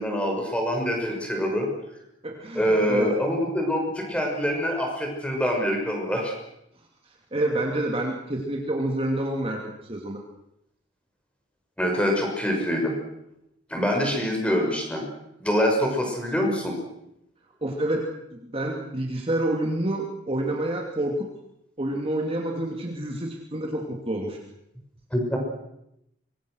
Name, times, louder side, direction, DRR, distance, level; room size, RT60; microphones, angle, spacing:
voice 1, 0.0-1.7 2.5-6.3 11.8-12.9 13.7-15.0 15.4-16.8 25.1-25.4, equal, 5° left, 1 dB, 6.3 m, -25 dB
voice 2, 2.2-3.1 7.3-10.2 17.6-18.0 18.3-21.3 21.8-24.4, right 1 dB, 30° right, 0 dB, 2.7 m, -28 dB
25.0 x 23.5 x 6.4 m, 0.82 s
head